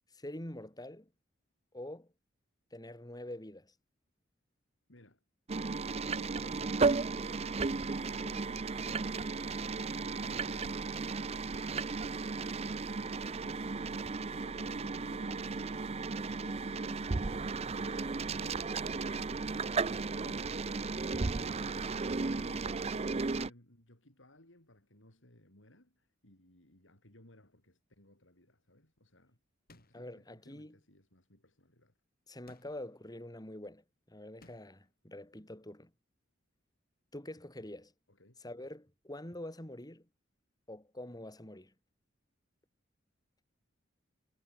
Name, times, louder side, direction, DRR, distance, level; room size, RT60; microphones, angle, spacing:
voice 1, 0.1-1.1 1.7-2.1 2.7-3.7 8.2-8.4 29.9-30.8 32.3-35.9 37.1-37.9 38.4-40.1 40.7-41.7, left 1 dB, 20° left, 3.6 m, -46 dB
voice 2, 4.9-5.2 6.0-12.3 12.6-20.8 21.1-29.4 29.9-32.0 38.1-38.4, left 1 dB, 75° left, 6.3 m, -60 dB
sound 1, 5.5-23.5, right 4 dB, 35° right, 0.6 m, -35 dB
sound 2, 29.7-30.2 32.5-33.0 34.4-34.9, left 2 dB, 50° left, 5.7 m, -61 dB
head